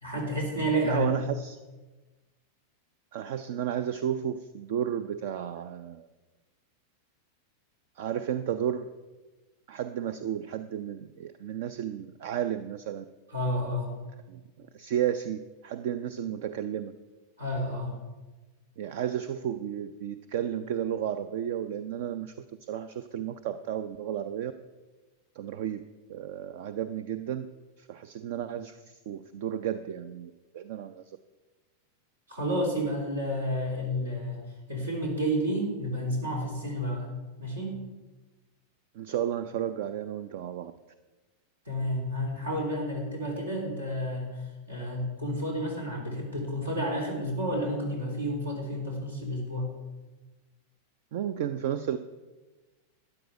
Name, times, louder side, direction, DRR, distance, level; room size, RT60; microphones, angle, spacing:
voice 1, 0.0-1.2 13.3-13.9 17.4-17.9 32.3-34.4 34.7-37.0 37.4-37.8 41.6-44.4 44.7-49.7, equal, 75° right, -1 dB, 3.4 m, -30 dB
voice 2, 0.8-1.6 3.1-6.1 8.0-8.9 9.7-13.0 14.3-16.9 18.8-24.5 25.3-25.8 26.1-27.5 27.8-31.2 38.9-40.7 51.1-52.0, right 10 dB, 50° right, 12 dB, 0.5 m, -33 dB
12.5 x 9.8 x 4.8 m, 1.2 s
figure-of-eight pair, 90°, 0 cm